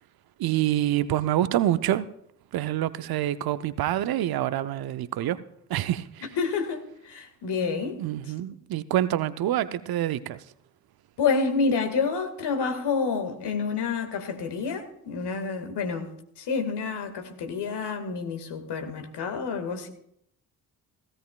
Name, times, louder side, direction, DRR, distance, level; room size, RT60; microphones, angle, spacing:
voice 1, 0.4-2.1 2.5-5.4 5.7-6.3 8.0-10.4, right 13 dB, 50° right, 0.7 m, -26 dB
voice 2, 6.4-8.0 11.2-16.1 16.4-19.9, left 5 dB, 55° left, 2.0 m, -28 dB
17.0 x 16.0 x 2.4 m
figure-of-eight pair, 40°, 47 cm